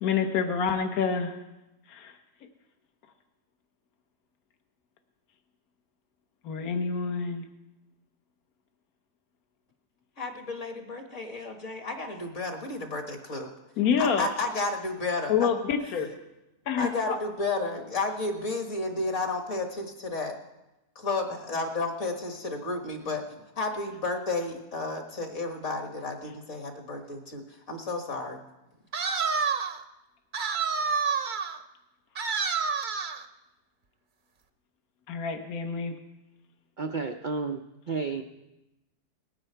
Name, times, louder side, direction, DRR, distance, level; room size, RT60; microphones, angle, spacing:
voice 1, 0.0-1.4 1.9-2.2 6.4-7.4 13.8-14.3 15.3-16.1 16.7-17.2 35.1-35.9, left 6 dB, 65° left, 6 dB, 1.5 m, -27 dB
voice 2, 10.2-13.5 14.0-15.5 16.8-20.4 21.0-23.2 23.6-28.4, left 3 dB, 50° left, 3 dB, 1.8 m, -32 dB
sound 1, 28.9-29.8 30.3-31.6 32.2-33.2, right 5 dB, 45° right, 0.6 m, -28 dB
voice 3, 36.8-38.2, right 4 dB, 85° right, 5 dB, 0.4 m, -32 dB
19.0 x 9.7 x 4.4 m, 0.95 s
omnidirectional pair, 1.7 m